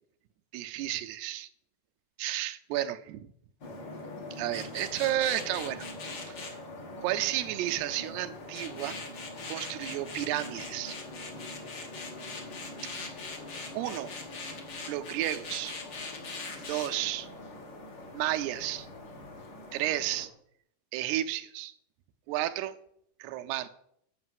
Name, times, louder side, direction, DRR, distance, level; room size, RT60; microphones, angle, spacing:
voice 1, 0.5-1.5 2.2-3.3 4.3-5.9 6.3-6.4 7.0-9.0 9.5-11.0 13.7-14.1 14.9-15.8 16.7-17.3 18.1-18.9 19.7-20.3 20.9-21.7 22.3-22.7 23.2-23.7, right 14 dB, 85° right, 9 dB, 2.6 m, -32 dB
sound 1, 3.6-20.2, left 3 dB, 65° left, 1.1 m, -41 dB
8.8 x 6.0 x 7.6 m, 0.70 s
omnidirectional pair, 4.7 m